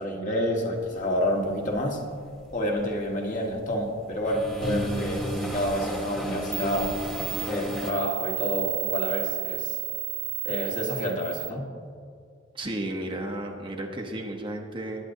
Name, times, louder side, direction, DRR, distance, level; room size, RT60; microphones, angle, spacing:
voice 1, 0.0-2.0 2.5-7.0 7.5-9.8 10.4-11.7, equal, 40° left, 0 dB, 1.6 m, -29 dB
sound 1, 1.5-1.8 2.3-3.6 4.0-7.9, equal, 5° left, 1.3 m, -32 dB
sound 2, 6.1-6.2 6.5-11.5, right 17 dB, 45° right, 0.5 m, -33 dB
voice 2, 12.5-15.1, right 1 dB, 25° right, 1 dB, 0.9 m, -33 dB
19.5 x 9.1 x 2.7 m, 2.2 s
head